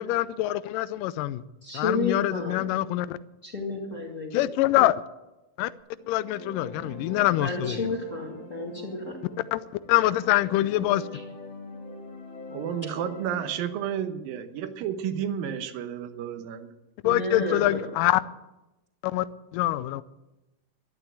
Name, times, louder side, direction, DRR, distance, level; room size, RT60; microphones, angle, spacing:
voice 1, 0.0-1.4 1.7-3.2 4.3-5.0 5.6-5.7 6.1-7.8 9.5-9.6 9.9-11.0 17.0-18.2 19.0-19.3 19.5-20.0, left 15 dB, 80° left, 2.1 m, -24 dB
voice 2, 1.6-2.6 3.4-4.5 7.4-9.2 11.1-11.2 17.0-17.8, left 3 dB, 25° left, 1.8 m, -31 dB
sound 1, 5.9-13.8, left 2 dB, 55° left, 3.9 m, -43 dB
voice 3, 12.5-16.7, right 9 dB, 80° right, 2.8 m, -31 dB
12.5 x 11.5 x 8.0 m
omnidirectional pair, 4.1 m